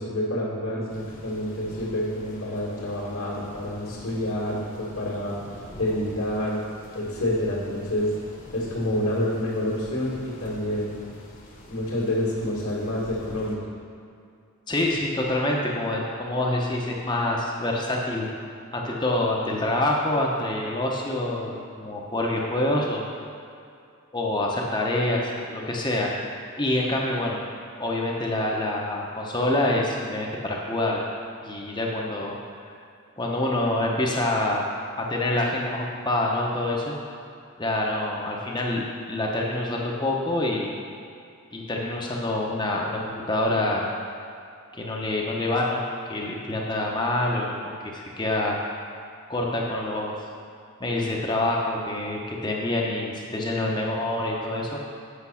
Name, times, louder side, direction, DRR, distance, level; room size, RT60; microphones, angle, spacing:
voice 1, 0.0-5.4 5.8-6.6 6.9-8.1 8.5-10.9 11.7-13.6, left 1 dB, 75° left, -7 dB, 1.9 m, -28 dB
sound 1, 0.9-13.6, left 1 dB, 40° left, 1.2 m, -45 dB
voice 2, 14.7-18.3 18.7-23.1 24.1-26.1 26.6-27.4 27.8-31.0 31.4-32.4 33.2-34.6 35.0-37.0 37.6-40.7 41.5-43.8 44.7-48.6 49.3-50.2 50.8-54.8, left 1 dB, 20° left, -2 dB, 0.9 m, -26 dB
8.4 x 6.1 x 5.7 m, 2.5 s
head